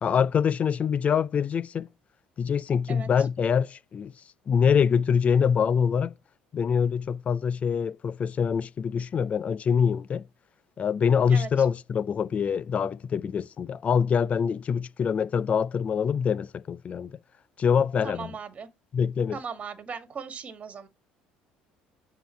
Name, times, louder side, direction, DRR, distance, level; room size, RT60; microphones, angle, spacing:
voice 1, 0.0-1.9 2.4-4.1 4.5-6.1 6.5-10.2 10.8-17.1 17.6-18.3 18.9-19.4, left 7 dB, 40° left, 0.5 m, -25 dB
voice 2, 18.0-18.7 19.3-20.9, right 6 dB, 40° right, 1.6 m, -38 dB
9.2 x 3.9 x 4.4 m
supercardioid pair, 85°, 4 cm